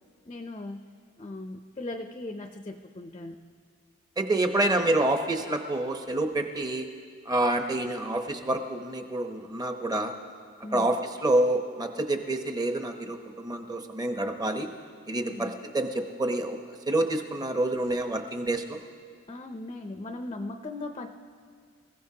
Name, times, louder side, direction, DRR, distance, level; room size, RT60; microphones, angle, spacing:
voice 1, 0.2-0.9 1.2-3.4 10.6-10.9 15.2-15.5 19.3-21.1, left 2 dB, 25° left, 6 dB, 0.5 m, -38 dB
voice 2, 4.2-6.9 7.3-10.1 10.7-14.7 15.1-18.8, right 1 dB, 20° right, 5 dB, 0.8 m, -28 dB
26.5 x 15.5 x 2.8 m, 2.1 s
head